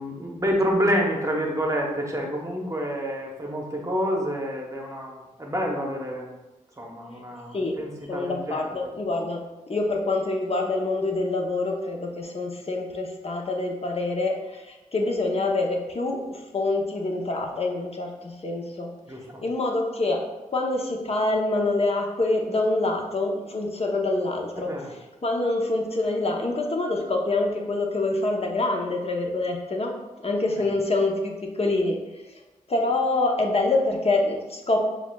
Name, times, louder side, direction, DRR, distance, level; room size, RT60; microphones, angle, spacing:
voice 1, 0.0-6.3 6.8-8.7 19.1-19.4 24.6-24.9, equal, 20° right, 0 dB, 0.9 m, -28 dB
voice 2, 8.1-9.4 9.7-18.9 19.4-20.2 20.5-24.7 25.2-29.9 30.2-32.0 32.7-34.8, left 2 dB, 45° left, 1 dB, 0.8 m, -26 dB
6.9 x 2.4 x 2.3 m, 1.1 s
cardioid pair, 45°, 14 cm